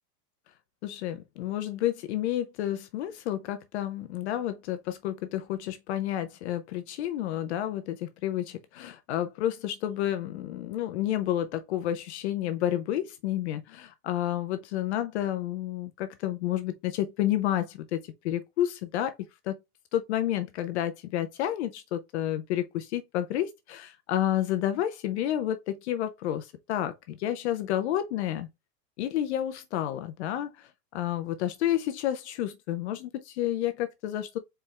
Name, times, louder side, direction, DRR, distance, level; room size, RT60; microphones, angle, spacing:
voice 1, 0.8-19.1 19.4-19.6 19.9-28.5 29.0-34.4, left 12 dB, 45° left, 0.6 m, -30 dB
4.4 x 3.4 x 3.2 m
supercardioid pair, 160°, 48 cm